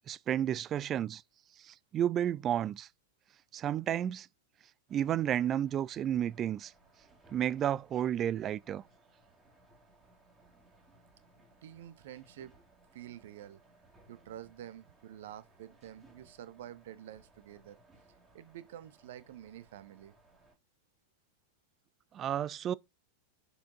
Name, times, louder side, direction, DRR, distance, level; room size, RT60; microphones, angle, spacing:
voice 1, 0.1-1.2 1.6-2.9 3.5-4.3 4.9-6.7 7.3-8.8 22.1-22.7, right 10 dB, 30° right, 0.3 m, -32 dB
sound 1, 4.9-20.6, right 2 dB, 10° right, 2.2 m, -64 dB
voice 2, 11.6-12.6 12.9-13.6 14.1-17.8 18.3-20.1, right 11 dB, 55° right, 0.8 m, -48 dB
6.8 x 5.0 x 3.8 m
figure-of-eight pair, 90°, 0 cm